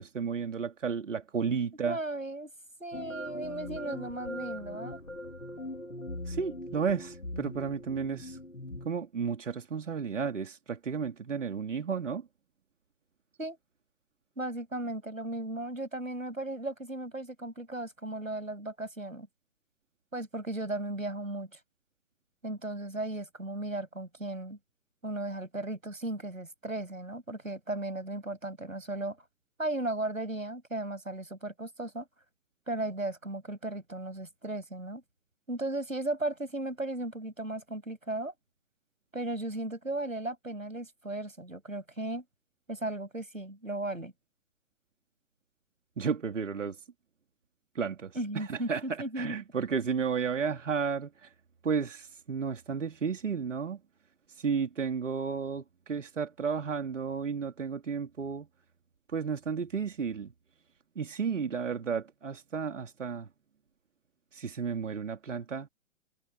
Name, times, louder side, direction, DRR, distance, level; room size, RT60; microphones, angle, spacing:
voice 1, 0.0-2.0 6.3-8.4 8.8-12.3 46.0-46.8 47.7-51.3 51.6-53.8 54.4-58.5 59.1-60.3 60.9-63.3 64.3-65.7, right 6 dB, 65° right, 3.2 m, -33 dB
voice 2, 1.8-2.5 2.8-5.0 13.4-13.6 14.4-19.3 20.1-21.6 22.4-24.6 25.0-29.2 29.6-32.1 32.7-35.0 35.5-38.3 39.1-42.2 42.7-44.1 48.1-49.4, right 2 dB, 85° right, 7.7 m, -36 dB
sound 1, 2.9-8.9, left 1 dB, 90° left, 3.0 m, -41 dB
figure-of-eight pair, 120°, 39 cm